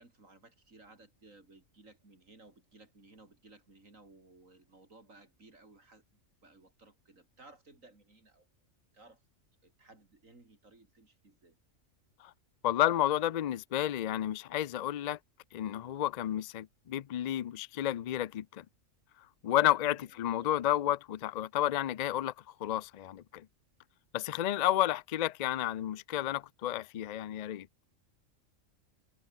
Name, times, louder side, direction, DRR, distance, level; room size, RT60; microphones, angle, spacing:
voice 1, 0.0-8.5 8.9-9.2 9.6-11.6 19.8-20.1 20.4-20.6, right 2 dB, 80° right, 5.0 m, -59 dB
voice 2, 12.6-15.2 15.5-18.6 19.4-22.3 22.6-23.5 24.1-27.7, left 12 dB, 80° left, 0.3 m, -31 dB
omnidirectional pair, 1.4 m